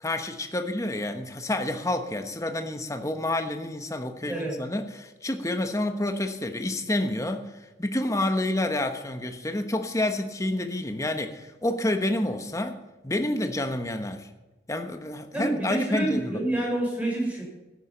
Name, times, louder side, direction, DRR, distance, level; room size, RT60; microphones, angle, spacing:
voice 1, 0.0-7.5 7.8-12.8 13.0-14.3 14.7-16.4, left 1 dB, 20° left, 6 dB, 1.1 m, -29 dB
voice 2, 4.3-4.6 15.3-17.4, right 1 dB, 10° right, -2 dB, 5.6 m, -27 dB
14.0 x 10.5 x 5.7 m, 1.1 s
head